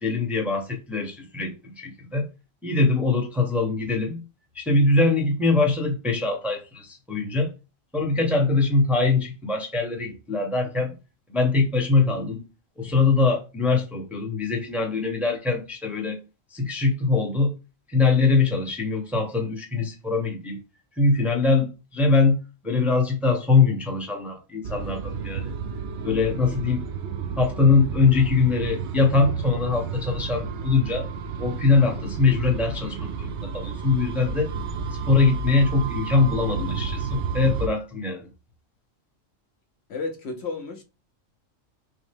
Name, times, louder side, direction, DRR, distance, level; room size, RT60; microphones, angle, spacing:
voice 1, 0.0-2.3 2.6-4.2 4.5-7.5 7.9-10.9 11.3-12.4 12.8-16.2 16.5-17.5 17.9-20.6 21.0-25.5 26.0-26.9 27.4-31.1 31.4-34.5 35.1-38.3, left 3 dB, ahead, 0.7 m, -22 dB
sound 1, 24.6-37.7, right 5 dB, 65° right, 0.8 m, -31 dB
voice 2, 39.9-40.8, left 3 dB, 60° left, 0.9 m, -32 dB
6.0 x 2.0 x 3.4 m
omnidirectional pair, 1.3 m